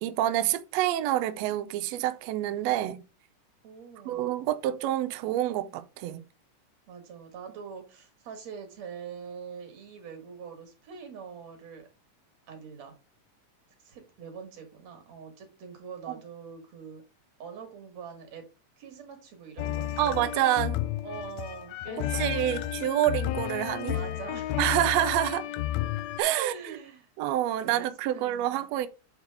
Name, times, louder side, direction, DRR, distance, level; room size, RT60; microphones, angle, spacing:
voice 1, 0.0-3.0 4.0-6.2 20.0-20.8 22.1-24.0 24.6-25.5 26.2-26.5 27.2-28.9, right 13 dB, 85° right, 1.5 m, -27 dB
voice 2, 3.6-4.3 6.9-11.9 12.5-13.0 13.8-17.0 17.4-18.5 18.8-20.4 21.0-22.9 23.9-25.3 26.4-27.1 27.6-28.9, right 6 dB, 60° right, 2.8 m, -44 dB
sound 1, 19.6-26.2, left 13 dB, 85° left, 1.5 m, -32 dB
8.0 x 4.3 x 3.5 m
omnidirectional pair, 3.6 m